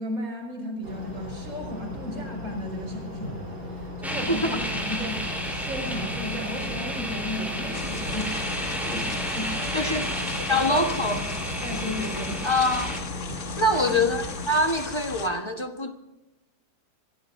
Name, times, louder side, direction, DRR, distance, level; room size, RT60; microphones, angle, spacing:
voice 1, 0.0-8.5 8.8-12.5 13.7-14.0, equal, 45° right, 5.8 m, -35 dB
sound 1, 0.8-14.5, left 2 dB, 65° right, 4.3 m, -37 dB
sound 2, 4.0-13.0, equal, ahead, 3.8 m, -32 dB
sound 3, 7.7-15.3, left 4 dB, 45° left, 1.5 m, -37 dB
voice 2, 9.7-10.1 10.5-11.2 12.4-12.9 13.6-15.9, left 1 dB, 20° left, 1.1 m, -24 dB
25.5 x 17.5 x 2.7 m
omnidirectional pair, 2.0 m